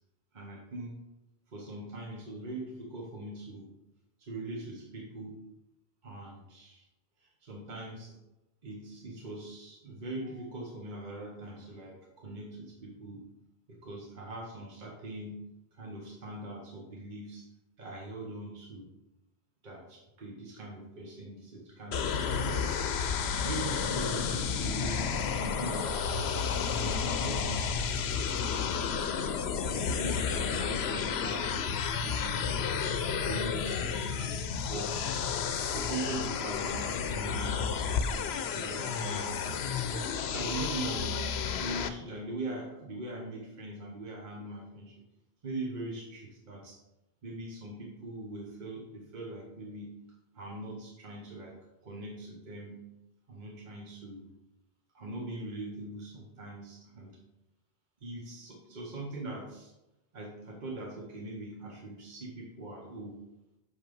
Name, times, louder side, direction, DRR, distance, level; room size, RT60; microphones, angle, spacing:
voice 1, 0.3-1.0 1.5-3.7 4.2-5.4 6.0-6.8 7.2-8.2 8.6-13.3 13.7-17.5 17.8-18.9 19.6-22.6 23.0-26.3 26.8-28.0 28.5-29.2 29.5-31.6 32.0-32.7 33.2-35.1 35.6-45.0 45.4-46.8 47.2-49.9 50.3-51.6 51.8-52.8 53.3-54.3 54.9-57.2 58.0-59.7 60.1-63.2, right 2 dB, 50° right, -1 dB, 1.2 m, -42 dB
sound 1, 21.9-41.9, left 6 dB, 85° left, 0.9 m, -31 dB
6.4 x 5.6 x 5.3 m, 0.94 s
omnidirectional pair, 1.1 m